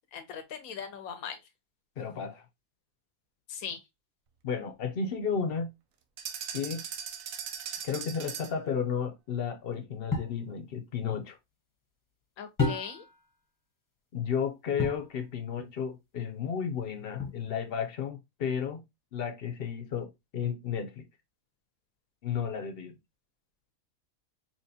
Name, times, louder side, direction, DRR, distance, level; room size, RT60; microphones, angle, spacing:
voice 1, 0.1-1.4 3.5-3.8 12.4-13.0, left 7 dB, 85° left, 1.2 m, -39 dB
voice 2, 2.0-2.4 4.4-5.7 6.5-6.8 7.8-11.4 14.1-18.8 19.1-21.1 22.2-22.9, left 7 dB, 55° left, 0.7 m, -33 dB
sound 1, 6.2-8.7, right 8 dB, 75° right, 1.1 m, -39 dB
sound 2, 10.1-10.4 12.6-13.2 14.8-15.1 17.2-17.7, left 4 dB, 15° left, 0.8 m, -31 dB
4.5 x 2.9 x 2.7 m
omnidirectional pair, 1.5 m